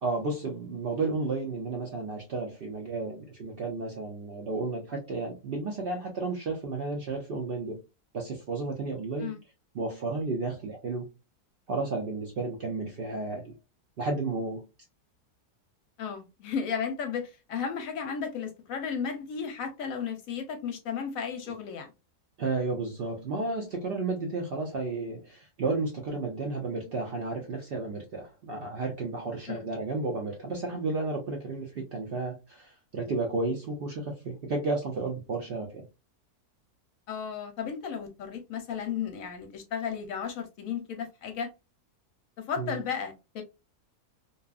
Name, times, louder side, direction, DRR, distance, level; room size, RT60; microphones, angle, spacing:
voice 1, 0.0-7.8 8.1-9.3 9.7-11.1 11.7-13.5 14.0-14.7 22.4-35.9 42.6-42.8, right 3 dB, 75° right, 0.5 m, -32 dB
voice 2, 16.0-21.9 29.5-29.6 37.1-41.5 42.4-43.4, left 7 dB, 70° left, 0.9 m, -34 dB
2.8 x 2.3 x 2.3 m
omnidirectional pair, 1.6 m